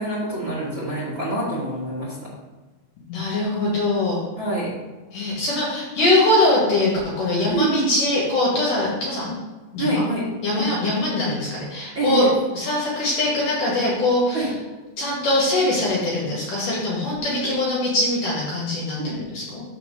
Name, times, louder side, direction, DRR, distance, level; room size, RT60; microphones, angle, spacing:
voice 1, 0.0-2.1 4.4-4.7 7.5-7.9 9.8-10.3 10.5-10.7 11.9-12.3 14.3-14.5 17.4-17.5 19.0-19.2, right 2 dB, 55° right, -9 dB, 1.3 m, -25 dB
voice 2, 3.1-4.2 5.1-9.3 9.7-10.0 10.4-12.3 12.5-14.5 15.0-19.6, left 2 dB, 55° left, -5 dB, 2.8 m, -22 dB
6.3 x 4.5 x 6.6 m, 1.2 s
omnidirectional pair, 5.2 m